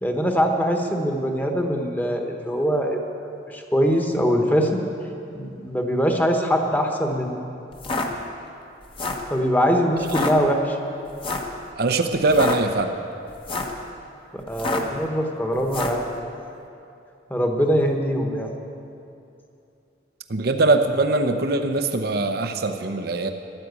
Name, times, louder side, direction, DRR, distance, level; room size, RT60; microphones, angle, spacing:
voice 1, 0.0-4.8 5.3-7.3 9.3-10.8 14.3-16.3 17.3-18.5, equal, 10° left, 3 dB, 1.3 m, -23 dB
sound 1, 7.7-8.1 8.8-9.3 10.0-10.3 11.2-11.5 12.2-12.6 13.3-13.8 14.5-15.0 15.7-16.0, left 3 dB, 30° left, 1.2 m, -27 dB
voice 2, 11.8-12.9 20.3-23.3, right 2 dB, 60° right, 7 dB, 0.8 m, -22 dB
13.5 x 11.5 x 8.3 m, 2.7 s
head